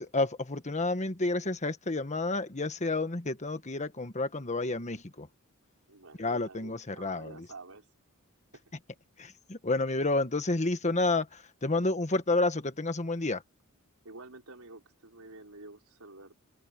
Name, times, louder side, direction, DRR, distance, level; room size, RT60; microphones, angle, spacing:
voice 1, 0.0-5.3 6.2-7.4 9.2-13.4, left 2 dB, 35° left, 1.5 m, -30 dB
voice 2, 5.9-7.9 8.5-8.6 14.0-16.4, right 3 dB, 75° right, 5.0 m, -49 dB
open air
head